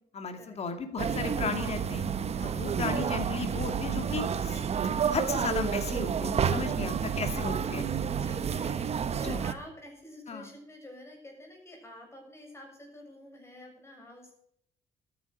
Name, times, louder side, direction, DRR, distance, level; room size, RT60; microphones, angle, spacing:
voice 1, 0.1-2.1 2.4-4.6 5.1-7.8 9.2-9.4 10.3-10.5, left 5 dB, 40° left, 7 dB, 2.4 m, -35 dB
sound 1, 1.0-9.5, right 7 dB, 40° right, 1.1 m, -30 dB
voice 2, 8.1-14.3, left 1 dB, 15° left, 1 dB, 7.0 m, -49 dB
12.5 x 10.0 x 6.5 m, 0.70 s
cardioid pair, 110°, 17 cm